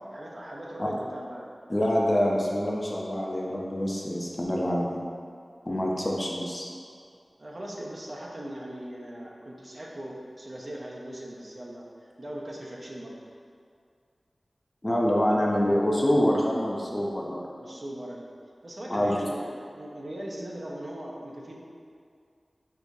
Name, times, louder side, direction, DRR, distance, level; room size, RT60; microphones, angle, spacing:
voice 1, 0.1-1.5 5.7-6.0 7.4-13.2 17.6-18.2 18.6-21.6, right 1 dB, 55° right, -3 dB, 0.5 m, -39 dB
voice 2, 1.7-5.0 5.7-6.7 14.8-17.4 18.9-19.2, equal, 30° left, -3 dB, 0.5 m, -26 dB
4.6 x 2.4 x 2.6 m, 2.3 s
wide cardioid pair, 65°, 0 cm